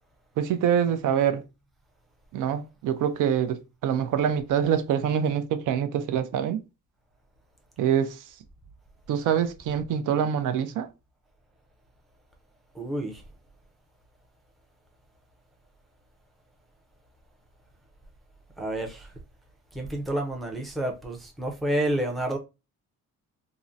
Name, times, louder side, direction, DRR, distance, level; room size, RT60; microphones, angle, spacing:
voice 1, 0.4-1.4 2.3-6.6 7.8-8.2 9.1-10.9, right 8 dB, 70° right, 0.5 m, -25 dB
voice 2, 12.7-13.2 18.6-19.1 19.7-22.4, right 1 dB, ahead, 0.5 m, -29 dB
3.6 x 2.1 x 2.6 m
cardioid pair, 155°, 32 cm